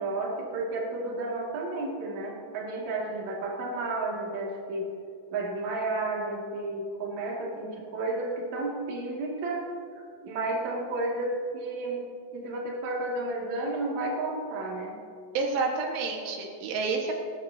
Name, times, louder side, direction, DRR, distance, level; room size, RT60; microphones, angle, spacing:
voice 1, 0.0-4.9 5.3-9.6 10.2-12.0 12.3-15.0, right 2 dB, 45° right, -3 dB, 2.9 m, -32 dB
voice 2, 15.4-17.1, right 4 dB, 90° right, 1 dB, 4.0 m, -29 dB
19.0 x 19.0 x 2.8 m, 2.4 s
omnidirectional pair, 5.4 m